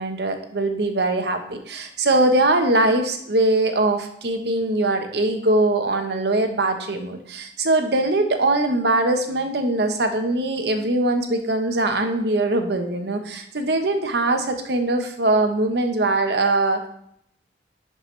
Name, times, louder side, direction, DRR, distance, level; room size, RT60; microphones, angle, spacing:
voice 1, 0.0-16.9, right 2 dB, 65° right, 6 dB, 0.9 m, -22 dB
11.0 x 4.8 x 3.2 m, 0.70 s
head